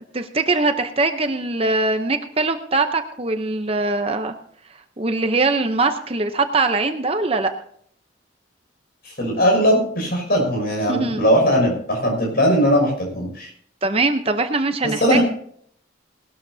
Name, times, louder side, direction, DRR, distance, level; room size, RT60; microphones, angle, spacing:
voice 1, 0.1-4.3 5.0-7.5 10.9-11.2 13.8-15.2, right 3 dB, 30° right, 7 dB, 0.7 m, -21 dB
voice 2, 9.0-13.5 15.0-15.2, equal, 50° left, 0 dB, 6.0 m, -19 dB
19.5 x 12.5 x 2.7 m, 0.64 s
head